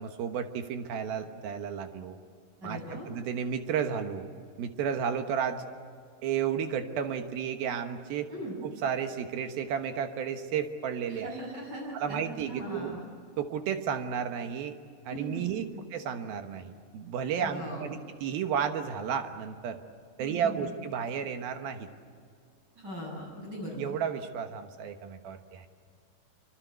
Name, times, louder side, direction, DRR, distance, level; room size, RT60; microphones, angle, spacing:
voice 1, 0.0-2.2 2.6-4.3 4.6-5.6 6.2-8.3 8.6-11.3 11.9-12.9 13.4-14.7 15.1-19.8 20.2-21.9 23.8-25.7, right 7 dB, 75° right, 7 dB, 3.1 m, -32 dB
voice 2, 2.6-3.1 8.3-8.6 11.1-12.2 12.5-13.0 15.1-15.4 15.7-15.8 17.4-17.9 20.2-20.7 22.8-23.9, right 1 dB, 25° right, -1 dB, 8.2 m, -39 dB
27.5 x 25.0 x 8.2 m, 2.2 s
omnidirectional pair, 4.4 m